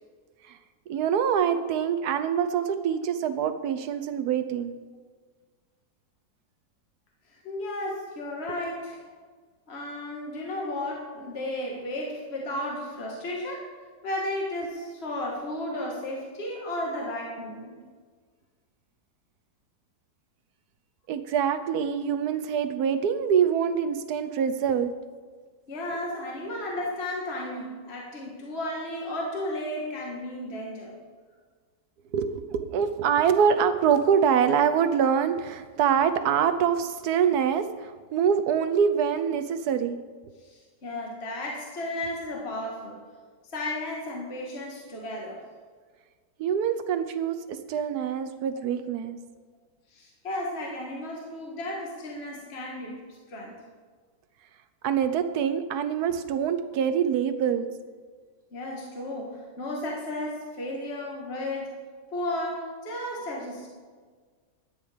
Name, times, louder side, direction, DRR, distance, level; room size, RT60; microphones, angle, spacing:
voice 1, 0.9-4.8 21.1-24.9 32.1-40.0 46.4-49.2 54.8-57.7, right 7 dB, 65° right, 10 dB, 1.3 m, -25 dB
voice 2, 7.3-9.0 9.7-13.8 14.0-17.8 25.7-31.0 40.4-43.0 43.5-45.5 49.9-53.5 58.5-61.8 62.1-63.7, left 1 dB, 35° left, -2 dB, 1.9 m, -34 dB
12.5 x 9.4 x 5.1 m, 1.5 s
omnidirectional pair, 1.9 m